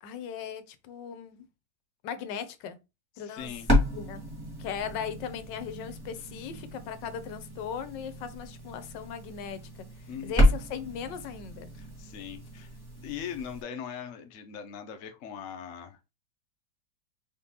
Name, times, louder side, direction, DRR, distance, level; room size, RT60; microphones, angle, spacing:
voice 1, 0.0-1.4 2.0-2.8 3.2-3.5 3.9-4.2 4.6-9.6 10.2-11.7, left 7 dB, 80° left, 1.3 m, -38 dB
voice 2, 3.2-3.7 10.1-10.5 11.7-12.7 13.0-16.0, left 8 dB, 60° left, 0.8 m, -40 dB
sound 1, 3.4-13.6, left 1 dB, 15° right, 1.4 m, -31 dB
4.3 x 3.7 x 2.8 m
omnidirectional pair, 2.0 m